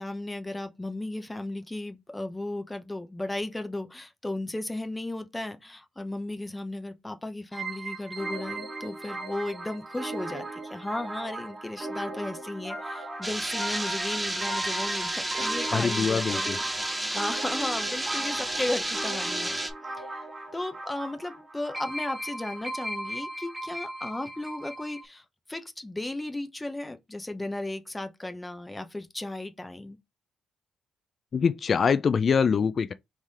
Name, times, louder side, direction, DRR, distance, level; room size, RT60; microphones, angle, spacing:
voice 1, 0.0-16.6 17.1-19.6 20.0-20.3 20.5-30.0, left 2 dB, 15° left, 0.7 m, -35 dB
sound 1, 7.5-25.0, right 2 dB, 30° right, 1.5 m, -37 dB
sound 2, 13.2-19.7, right 1 dB, 15° right, 0.9 m, -31 dB
voice 2, 15.7-16.6 31.3-32.9, left 6 dB, 45° left, 0.4 m, -24 dB
3.6 x 3.2 x 4.1 m
cardioid pair, 90°, 0 cm